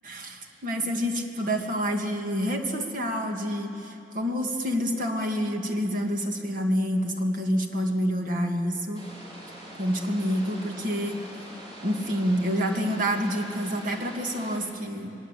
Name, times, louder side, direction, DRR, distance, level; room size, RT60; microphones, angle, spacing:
voice 1, 0.0-9.0 9.8-11.2 11.8-15.1, equal, 50° right, 3 dB, 2.1 m, -28 dB
sound 1, 8.9-14.6, right 1 dB, 30° right, 4.3 m, -44 dB
26.0 x 19.0 x 8.2 m, 2.8 s
head